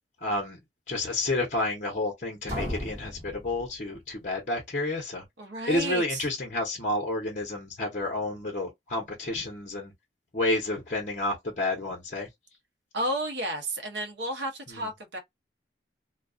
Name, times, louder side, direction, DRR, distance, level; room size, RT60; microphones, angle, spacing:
voice 1, 0.2-0.6 0.9-5.2 5.7-9.9 10.3-12.3 14.7-14.9, left 2 dB, 45° left, 0.8 m, -30 dB
sound 1, 2.5-4.3, left 1 dB, 30° right, 1.3 m, -36 dB
voice 2, 5.4-6.2 12.9-15.2, right 1 dB, 75° right, 0.8 m, -32 dB
2.3 x 2.3 x 2.4 m
head